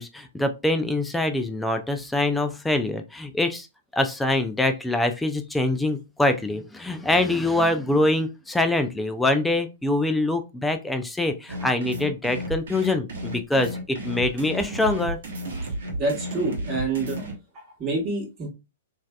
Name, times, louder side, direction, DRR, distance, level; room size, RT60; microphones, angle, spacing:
voice 1, 0.0-3.7 3.9-15.2, left 2 dB, 5° left, 7 dB, 0.4 m, -24 dB
sound 1, 11.5-17.3, equal, 60° right, 0.9 m, -33 dB
voice 2, 16.0-17.2 17.5-18.5, right 3 dB, 30° right, -3 dB, 1.3 m, -27 dB
3.2 x 2.6 x 2.3 m, 0.27 s
figure-of-eight pair, 110°, 0 cm